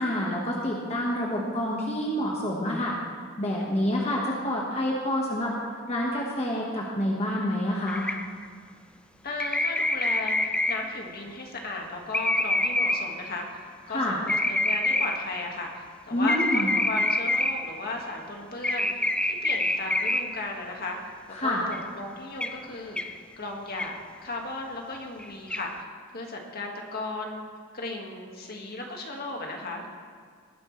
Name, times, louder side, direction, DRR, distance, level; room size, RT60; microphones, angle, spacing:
voice 1, 0.0-3.0 3.4-5.5 5.9-8.1 13.9-14.2 16.1-16.7 21.3-21.6, left 1 dB, 30° left, -3 dB, 1.4 m, -27 dB
sound 1, 7.9-8.4 9.4-11.0 12.1-13.3 14.3-15.4 16.3-17.8 18.6-20.4 21.7-21.8 22.4-22.6 23.0-23.1 23.8-24.0 25.2-25.3 25.5-25.7, left 1 dB, 5° left, 0.4 m, -26 dB
voice 2, 9.2-13.5 13.9-21.0 21.4-23.9 24.2-27.4 27.7-29.9, left 2 dB, 50° left, 1 dB, 1.8 m, -36 dB
19.5 x 9.8 x 3.2 m, 2.1 s
head